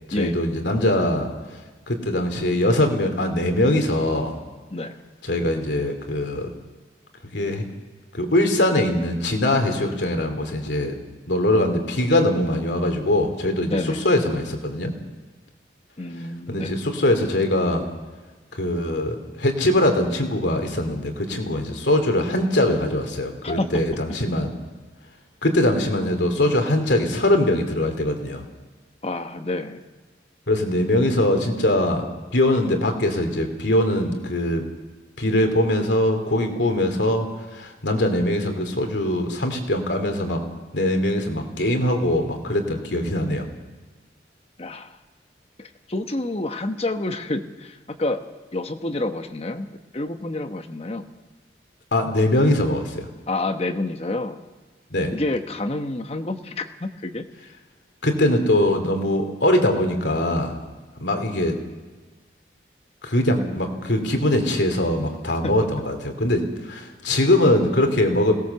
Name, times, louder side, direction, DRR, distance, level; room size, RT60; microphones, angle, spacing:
voice 1, 0.2-1.3 1.9-4.4 5.2-6.5 7.3-7.6 8.1-11.0 11.3-14.9 16.5-17.9 18.5-24.5 25.4-28.4 30.5-32.0 32.3-34.6 35.2-40.4 40.7-43.5 51.9-53.1 54.9-55.1 58.0-60.6 61.0-61.6 63.0-68.3, left 1 dB, 90° left, 5 dB, 2.7 m, -22 dB
voice 2, 13.7-14.0 16.0-16.8 23.4-23.8 29.0-29.8 44.6-45.0 45.6-48.2 48.5-49.7 49.9-51.1 53.3-54.4 55.1-57.2 65.4-65.5, left 2 dB, 35° left, 7 dB, 1.1 m, -28 dB
21.5 x 17.5 x 7.0 m, 1.3 s
head